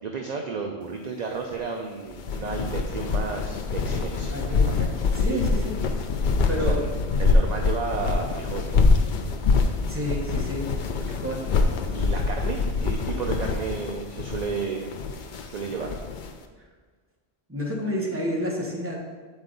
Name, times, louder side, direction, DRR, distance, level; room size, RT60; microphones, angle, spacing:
voice 1, 0.0-4.3 4.7-4.8 5.3-5.4 6.6-6.9 7.2-8.8 11.9-14.9 15.5-16.0, right 5 dB, 50° right, 1 dB, 0.6 m, -32 dB
sound 1, 2.1-16.3, left 4 dB, 55° left, 0.6 m, -25 dB
voice 2, 4.3-4.9 5.1-5.8 6.5-6.8 9.9-10.7 11.1-11.4 17.5-19.0, equal, 10° right, -2 dB, 1.0 m, -29 dB
8.1 x 4.5 x 3.9 m, 1.5 s
omnidirectional pair, 1.1 m